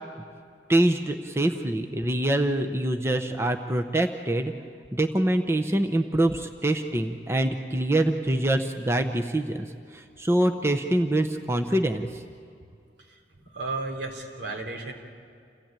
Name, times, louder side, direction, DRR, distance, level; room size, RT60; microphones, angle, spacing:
voice 1, 0.7-4.5 4.9-9.7 9.9-12.2, right 1 dB, 15° right, 4 dB, 0.7 m, -25 dB
voice 2, 13.0-14.9, right 3 dB, 75° right, 1 dB, 3.5 m, -34 dB
28.0 x 16.5 x 9.0 m, 2.3 s
head